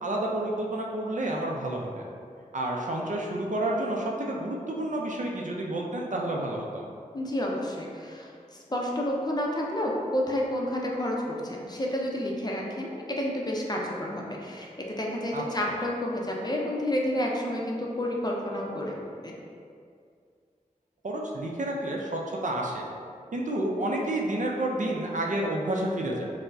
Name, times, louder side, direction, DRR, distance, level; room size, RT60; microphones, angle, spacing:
voice 1, 0.0-2.1 2.5-6.9 15.3-15.7 21.0-22.9 23.3-26.3, right 1 dB, 60° right, -1 dB, 0.5 m, -30 dB
voice 2, 7.1-19.3, left 1 dB, 30° left, -2 dB, 0.5 m, -30 dB
4.3 x 2.1 x 2.6 m, 2.3 s
cardioid pair, 45°, 15 cm